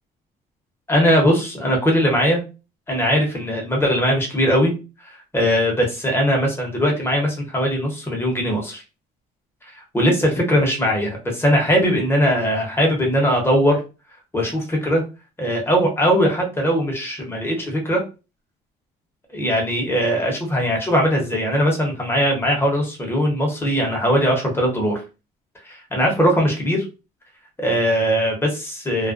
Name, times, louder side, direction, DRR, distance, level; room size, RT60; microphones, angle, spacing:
voice 1, 0.9-2.4 2.9-4.7 5.0-8.8 9.9-13.8 14.3-15.0 15.4-18.0 19.3-25.0 25.7-26.8 27.6-29.1, equal, 15° left, 0 dB, 0.9 m, -20 dB
2.3 x 2.1 x 2.5 m, 0.31 s
cardioid pair, 110°, 17 cm